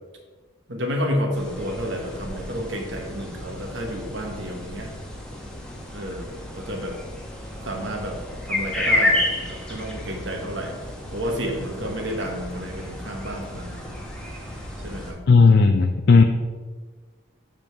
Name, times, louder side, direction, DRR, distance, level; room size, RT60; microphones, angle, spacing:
voice 1, 0.7-5.0 5.9-6.3 6.5-7.0 7.6-8.2 8.4-10.8 11.1-13.9 14.8-15.2, equal, 60° right, 2 dB, 1.4 m, -30 dB
sound 1, 1.3-15.1, left 1 dB, 5° left, 1.0 m, -31 dB
voice 2, 15.3-16.2, left 4 dB, 50° left, 5 dB, 0.4 m, -14 dB
7.6 x 5.3 x 4.7 m, 1.4 s
head